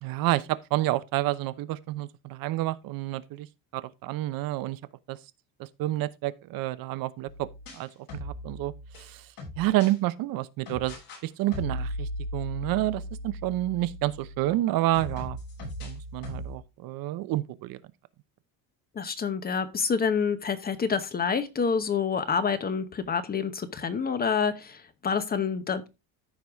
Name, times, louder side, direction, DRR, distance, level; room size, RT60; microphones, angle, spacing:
voice 1, 0.0-3.5 3.7-4.8 5.1-5.2 5.6-7.5 7.7-7.9 8.2-9.3 9.6-17.8, right 16 dB, 65° right, 0.8 m, -29 dB
sound 1, 7.3-10.0 10.7-11.2 11.5-14.5 14.9-16.6, left 1 dB, 65° left, 6.0 m, -38 dB
voice 2, 18.9-25.9, left 6 dB, 25° left, 0.9 m, -27 dB
14.0 x 4.8 x 3.5 m
cardioid pair, 145°, 38 cm